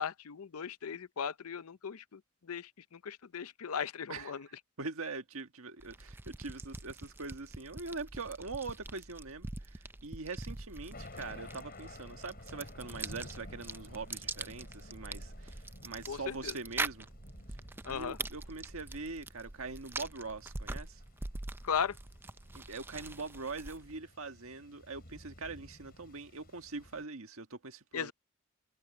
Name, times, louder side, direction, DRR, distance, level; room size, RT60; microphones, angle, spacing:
voice 1, 0.0-4.5 16.1-16.5 17.8-18.2 21.6-22.0 27.9-28.1, left 7 dB, 85° left, 0.6 m, -37 dB
voice 2, 4.8-17.1 17.8-21.0 22.5-28.1, right 3 dB, 70° right, 1.6 m, -43 dB
sound 1, 5.8-24.0, right 2 dB, 10° right, 0.4 m, -44 dB
Thunder, 10.9-27.0, left 1 dB, 45° left, 7.6 m, -54 dB
head